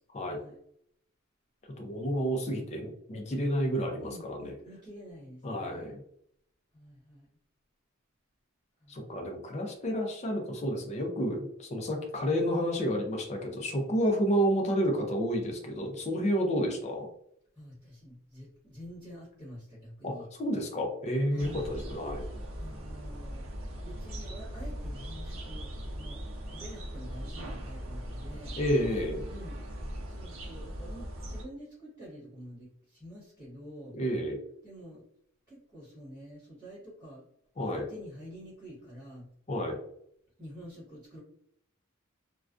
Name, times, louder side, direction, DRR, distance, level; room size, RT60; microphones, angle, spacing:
voice 1, 0.2-0.6 4.0-5.9 6.7-7.3 8.8-9.2 17.5-20.3 21.3-21.6 22.6-23.5 23.8-26.2 26.5-28.5 29.3-29.6 30.1-33.9 34.6-35.0 35.5-37.3 37.6-39.3 40.4-41.2, equal, 10° right, -10 dB, 1.1 m, -48 dB
voice 2, 1.8-4.5 5.4-6.0 8.9-17.1 20.0-22.2 28.5-29.2 33.9-34.4 37.6-37.8 39.5-39.8, equal, 30° left, 2 dB, 0.4 m, -30 dB
sound 1, 21.4-31.4, equal, 65° right, 0.5 m, -39 dB
2.3 x 2.2 x 2.4 m, 0.70 s
head